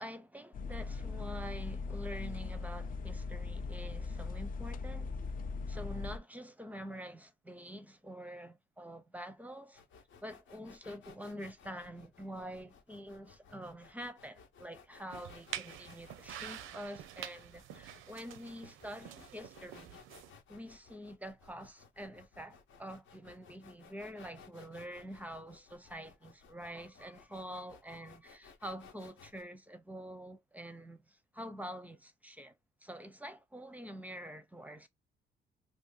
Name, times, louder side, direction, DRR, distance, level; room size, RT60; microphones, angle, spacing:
voice 1, 0.0-5.1 5.7-9.8 10.2-20.0 20.5-34.9, equal, 10° right, 0.5 m, -46 dB
sound 1, 0.5-6.2, left 4 dB, 45° left, 0.5 m, -39 dB
sound 2, 9.7-29.4, left 5 dB, 75° left, 0.9 m, -59 dB
sound 3, 15.1-20.3, right 11 dB, 90° right, 0.5 m, -47 dB
2.6 x 2.5 x 3.7 m
cardioid pair, 90°, 20 cm